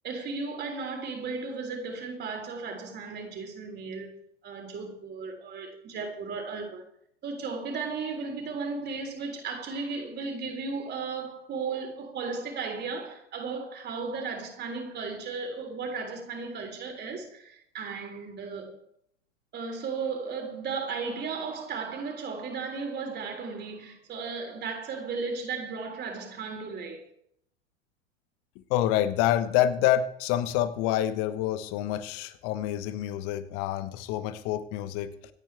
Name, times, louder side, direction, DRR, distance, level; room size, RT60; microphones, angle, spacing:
voice 1, 0.0-4.1 4.4-6.8 7.2-18.7 19.5-27.1, right 4 dB, 30° right, 3.8 m, -35 dB
voice 2, 28.7-35.2, left 12 dB, 40° left, 1.2 m, -27 dB
26.5 x 9.0 x 3.5 m
figure-of-eight pair, 90°, 36 cm